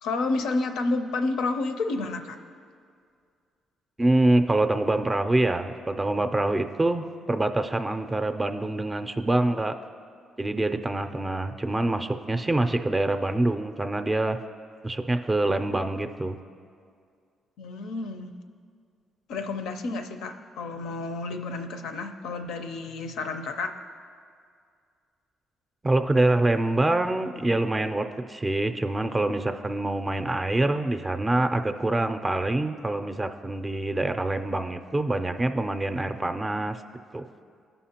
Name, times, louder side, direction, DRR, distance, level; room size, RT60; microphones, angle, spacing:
voice 1, 0.0-2.4 17.6-18.3 19.3-23.7, left 3 dB, 85° left, 7 dB, 0.5 m, -30 dB
voice 2, 4.0-9.7 10.4-14.4 14.8-16.4 25.8-36.8 37.1-37.2, right 2 dB, 20° right, 7 dB, 0.4 m, -25 dB
14.5 x 5.5 x 2.9 m, 2.2 s
cardioid pair, 90°, 0 cm